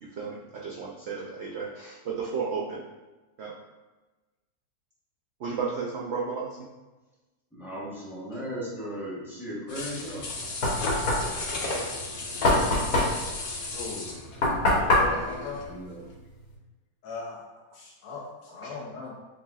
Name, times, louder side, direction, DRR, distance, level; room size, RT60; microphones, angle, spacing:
voice 1, 0.0-2.8 3.4-3.5 5.4-6.6 18.6-18.7, right 5 dB, 65° right, -3 dB, 0.6 m, -33 dB
voice 2, 7.5-10.3 15.7-16.0, equal, ahead, -6 dB, 0.8 m, -36 dB
sound 1, 9.7-15.7 16.0-16.1, left 2 dB, 50° left, 0.6 m, -35 dB
Knock, 10.1-16.5, left 1 dB, 90° left, 1.6 m, -26 dB
voice 3, 13.7-14.2 14.7-15.6 17.0-17.4 17.7-19.1, left 4 dB, 70° left, -3 dB, 1.1 m, -38 dB
7.1 x 2.7 x 2.3 m, 1.2 s
omnidirectional pair, 1.6 m